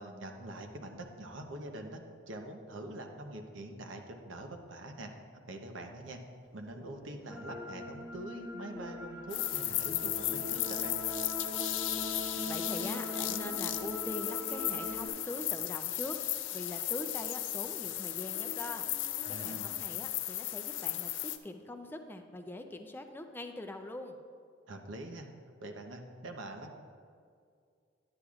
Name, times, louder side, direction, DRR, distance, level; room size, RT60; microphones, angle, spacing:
voice 1, 0.0-2.0 2.3-6.2 6.5-11.0 12.3-12.5 19.3-19.7 24.7-25.3 25.6-26.7, right 1 dB, 90° right, 4 dB, 0.8 m, -44 dB
Dog, 6.4-20.1, left 1 dB, 55° left, 0.8 m, -55 dB
sound 1, 7.3-15.1, left 1 dB, 5° right, 1.2 m, -41 dB
sound 2, 9.3-21.4, left 14 dB, 80° left, 0.4 m, -35 dB
voice 2, 12.5-24.2, left 1 dB, 10° left, 5 dB, 0.4 m, -43 dB
10.0 x 9.7 x 2.4 m, 2.2 s
head